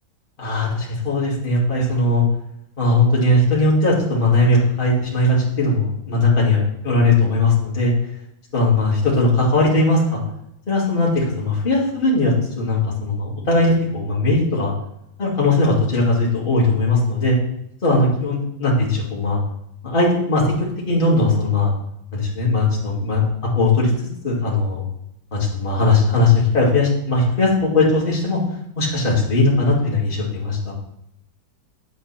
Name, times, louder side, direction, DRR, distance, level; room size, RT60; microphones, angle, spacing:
voice 1, 0.4-2.2 2.8-7.9 8.5-10.2 10.7-14.7 15.2-17.4 17.8-19.4 19.8-20.5 20.9-21.7 22.1-23.9 24.2-24.8 25.3-28.4 28.8-30.7, left 2 dB, 25° left, -5 dB, 2.5 m, -19 dB
9.0 x 7.9 x 4.3 m, 0.78 s
omnidirectional pair, 2.1 m